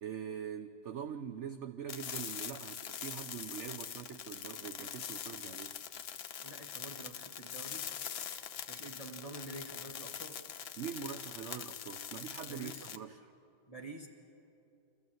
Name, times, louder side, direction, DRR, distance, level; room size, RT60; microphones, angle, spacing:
voice 1, 0.0-5.8 10.8-13.3, right 8 dB, 65° right, 8 dB, 0.7 m, -43 dB
sound 1, 1.9-13.0, left 8 dB, 70° left, 0.6 m, -43 dB
voice 2, 6.4-7.9 8.7-10.4 12.4-12.9 13.7-14.1, right 1 dB, 20° left, 1 dB, 1.7 m, -48 dB
26.0 x 14.0 x 7.7 m, 2.6 s
omnidirectional pair, 1.8 m